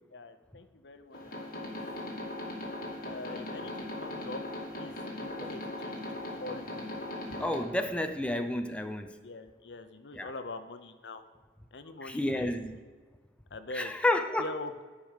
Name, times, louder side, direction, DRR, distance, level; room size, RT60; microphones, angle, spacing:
voice 1, 0.1-2.3 3.0-4.4 4.7-6.9 9.2-11.3 11.7-12.5 13.5-13.9 14.4-14.8, left 2 dB, 80° left, 0.7 m, -44 dB
sound 1, 1.1-7.6, left 1 dB, 55° left, 2.1 m, -39 dB
voice 2, 7.4-9.2 10.1-10.3 12.0-12.8 13.7-14.5, left 1 dB, 5° left, 0.5 m, -30 dB
12.0 x 5.0 x 6.6 m
head